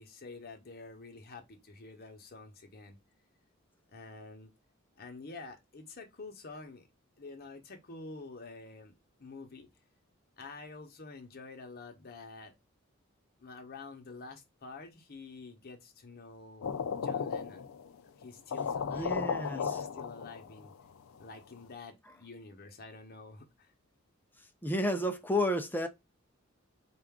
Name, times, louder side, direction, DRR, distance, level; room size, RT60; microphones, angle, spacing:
voice 1, 0.0-3.0 3.9-4.5 5.0-6.9 7.2-8.9 9.2-9.7 10.4-12.5 13.4-16.7 16.9-17.7 18.2-19.2 19.5-20.7 21.2-23.7, left 3 dB, 50° left, 0.9 m, -48 dB
sound 1, 16.6-17.9 18.2-18.3 18.5-20.7, left 6 dB, 80° left, 0.4 m, -35 dB
voice 2, 18.9-19.6 24.6-25.9, left 1 dB, 10° left, 0.5 m, -31 dB
4.4 x 2.5 x 3.5 m
head